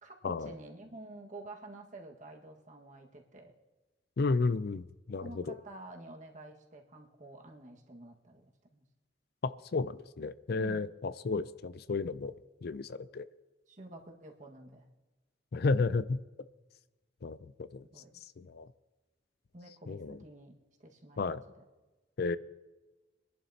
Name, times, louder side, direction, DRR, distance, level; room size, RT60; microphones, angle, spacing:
voice 1, 0.0-3.5 5.2-8.8 10.5-11.0 13.7-14.9 17.8-18.2 19.5-21.6, right 2 dB, 40° right, 1 dB, 1.7 m, -50 dB
voice 2, 4.2-5.5 9.4-12.3 12.6-13.2 15.5-16.2 17.2-17.8 18.4-18.7 19.9-20.2 21.2-21.4 22.2-22.4, left 3 dB, 55° left, 15 dB, 0.4 m, -32 dB
24.0 x 11.5 x 2.9 m, 1.2 s
head